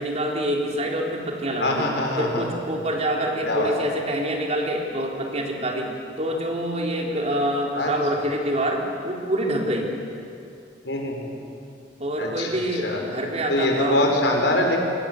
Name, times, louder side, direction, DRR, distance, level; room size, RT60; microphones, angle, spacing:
voice 1, 0.0-1.9 2.2-9.9 12.0-14.0, right 1 dB, 40° right, 0 dB, 4.0 m, -26 dB
voice 2, 1.6-2.4 3.5-3.7 7.7-7.9 10.8-11.3 12.2-12.5 12.8-13.0 13.5-14.8, left 1 dB, 80° left, 1 dB, 5.9 m, -23 dB
28.5 x 25.0 x 8.1 m, 2.6 s
head